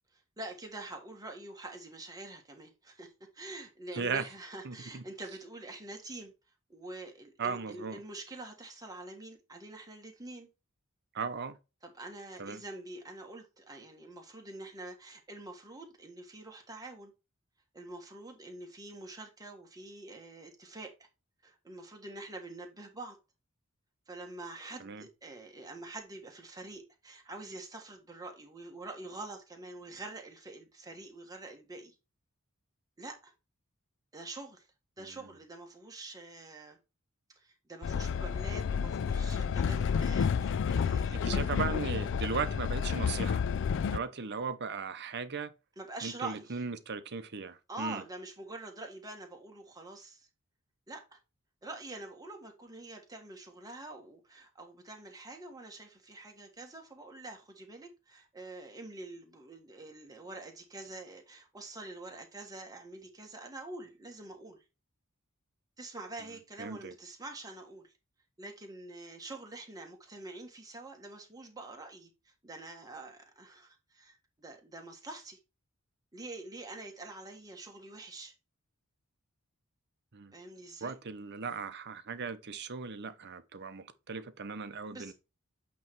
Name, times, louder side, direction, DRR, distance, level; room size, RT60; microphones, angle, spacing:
voice 1, 0.4-6.3 6.7-10.5 11.8-17.1 17.7-21.1 21.4-23.2 24.1-32.0 33.0-33.3 34.1-34.7 35.0-36.8 37.3-41.5 45.8-46.6 47.7-50.3 50.9-51.2 51.6-64.6 65.8-67.9 68.4-75.4 76.1-78.3 80.3-80.9 84.8-85.1, right 2 dB, 15° right, 1.4 m, -46 dB
voice 2, 4.6-5.0 7.4-8.0 11.1-11.6 12.4-12.6 24.8-25.1 35.2-35.3 41.1-43.4 43.8-45.5 46.0-48.0 66.6-66.9 80.1-80.3 80.8-85.1, right 5 dB, 50° right, 0.8 m, -37 dB
Train, 37.8-44.0, left 6 dB, 55° left, 0.3 m, -30 dB
8.4 x 3.2 x 4.5 m
head